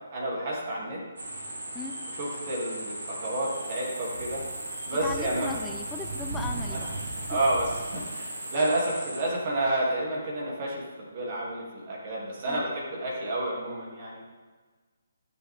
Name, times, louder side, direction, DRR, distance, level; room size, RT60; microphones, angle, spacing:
voice 1, 0.1-1.0 2.2-4.4 4.8-5.5 6.7-6.9 7.3-14.2, right 1 dB, 40° right, -4 dB, 3.0 m, -30 dB
sound 1, 1.2-9.2, right 2 dB, 75° right, 1.9 m, -36 dB
voice 2, 1.7-2.1 5.0-7.4 12.5-12.6, left 4 dB, 10° left, 3 dB, 0.8 m, -38 dB
14.5 x 6.9 x 3.7 m, 1.4 s
figure-of-eight pair, 145°, 0 cm